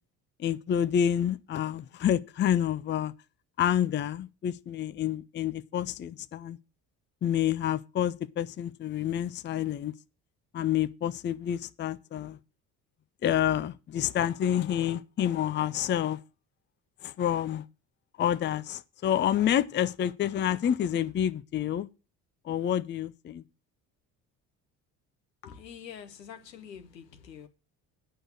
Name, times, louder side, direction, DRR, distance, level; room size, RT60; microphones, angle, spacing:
voice 1, 0.4-3.1 3.6-6.6 7.2-9.9 10.5-12.4 13.2-16.2 17.0-17.6 18.2-21.9 22.4-23.4, left 10 dB, 25° left, 0.5 m, -28 dB
voice 2, 25.4-27.5, left 8 dB, 80° left, 1.1 m, -46 dB
9.3 x 6.2 x 6.5 m
figure-of-eight pair, 50°, 49 cm